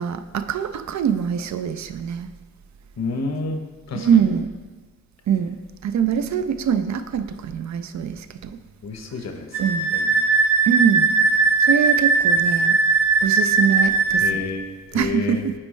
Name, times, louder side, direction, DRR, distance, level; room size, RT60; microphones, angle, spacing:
voice 1, 0.0-2.3 3.9-4.5 5.3-5.6 5.8-8.6 9.6-9.9 10.7-11.1 11.6-12.8 13.2-14.4 14.9-15.5, right 8 dB, 65° right, 10 dB, 0.5 m, -23 dB
voice 2, 3.0-4.3 8.8-9.6 9.9-10.1 14.2-14.6 14.9-15.4, left 3 dB, 60° left, 5 dB, 0.9 m, -29 dB
Wind instrument woodwind instrument, 9.5-14.3, right 4 dB, 45° right, 1.3 m, -19 dB
8.7 x 4.4 x 3.1 m, 1.4 s
cardioid pair, 55°, 30 cm